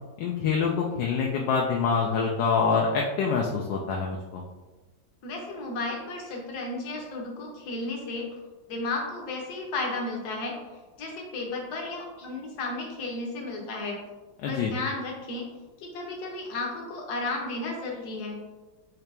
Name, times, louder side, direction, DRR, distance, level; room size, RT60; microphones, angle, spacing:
voice 1, 0.2-4.4 14.4-14.7, left 5 dB, 75° left, -1 dB, 1.2 m, -26 dB
voice 2, 5.2-8.4 8.7-10.6 11.0-14.0 14.5-18.4, left 2 dB, 60° left, 0 dB, 1.4 m, -33 dB
5.8 x 2.8 x 3.3 m, 1.2 s
omnidirectional pair, 2.1 m